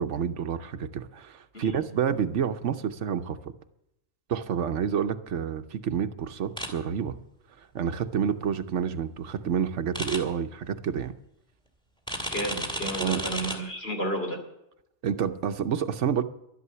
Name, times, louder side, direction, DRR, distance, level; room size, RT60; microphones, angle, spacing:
voice 1, 0.0-3.5 4.3-7.1 7.6-11.1 13.0-13.2 15.0-16.2, right 7 dB, 75° right, 10 dB, 1.1 m, -29 dB
sound 1, 6.6-6.7 9.9-10.2 12.1-13.6, right 1 dB, 5° left, 2.2 m, -32 dB
voice 2, 12.3-14.4, right 1 dB, 55° left, 2 dB, 3.1 m, -32 dB
12.0 x 11.0 x 6.8 m, 0.81 s
omnidirectional pair, 1.2 m